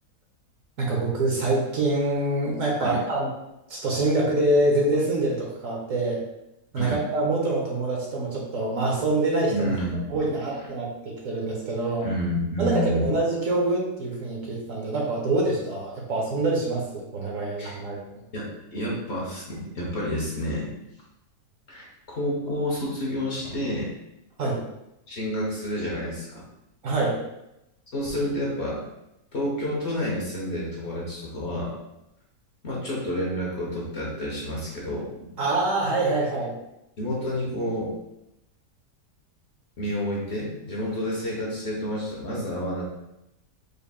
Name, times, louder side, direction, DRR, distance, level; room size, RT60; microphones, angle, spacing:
voice 1, 0.8-3.3 3.7-6.2 6.7-9.7 10.1-12.1 12.6-18.0 24.4-24.6 26.8-27.2 35.4-36.5, right 2 dB, 60° right, -2 dB, 1.1 m, -25 dB
voice 2, 9.5-10.2 12.0-13.1 17.6-17.8 18.3-20.8 21.7-23.9 25.1-26.4 27.9-28.8 29.3-31.7 32.6-35.3 37.0-37.9 39.8-42.9, equal, 45° left, -4 dB, 1.1 m, -29 dB
5.0 x 3.4 x 2.3 m, 0.87 s
omnidirectional pair, 1.8 m